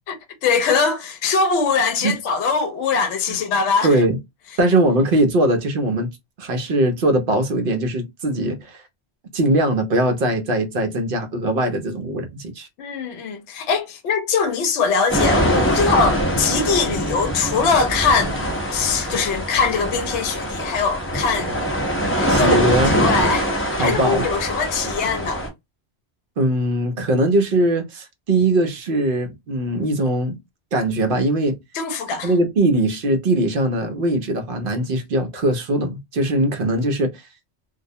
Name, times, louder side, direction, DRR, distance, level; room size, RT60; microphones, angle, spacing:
voice 1, 0.1-4.0 12.8-18.4 18.7-21.6 22.2-25.4 31.7-32.3, left 5 dB, 75° left, 0.9 m, -22 dB
voice 2, 3.8-4.2 4.6-6.1 6.4-8.8 9.3-12.7 22.3-23.0 23.8-24.2 26.4-30.4 30.7-31.6 32.2-37.2, right 1 dB, 60° right, 0.7 m, -20 dB
sound 1, 15.1-25.5, equal, 15° left, 0.5 m, -23 dB
2.3 x 2.0 x 2.6 m
omnidirectional pair, 1.2 m